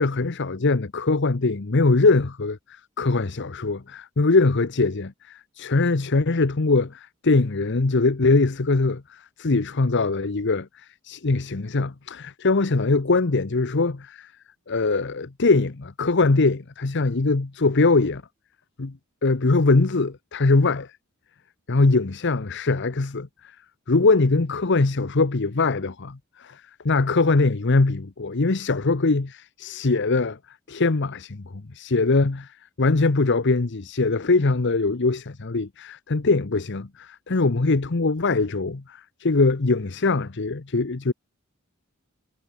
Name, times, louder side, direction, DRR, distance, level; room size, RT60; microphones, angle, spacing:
voice 1, 0.0-2.6 3.0-14.3 14.7-18.2 18.8-18.9 19.2-20.9 21.7-23.3 23.9-30.4 30.7-32.5 32.8-41.1, left 3 dB, 55° left, 0.9 m, -22 dB
head